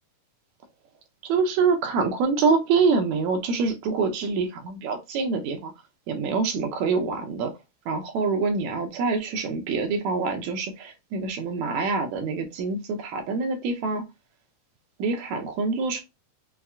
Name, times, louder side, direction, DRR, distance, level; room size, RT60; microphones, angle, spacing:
voice 1, 1.2-5.7 6.1-7.5 7.9-14.0 15.0-16.0, right 4 dB, 70° right, 1.9 m, -25 dB
5.5 x 2.5 x 2.3 m
omnidirectional pair, 3.6 m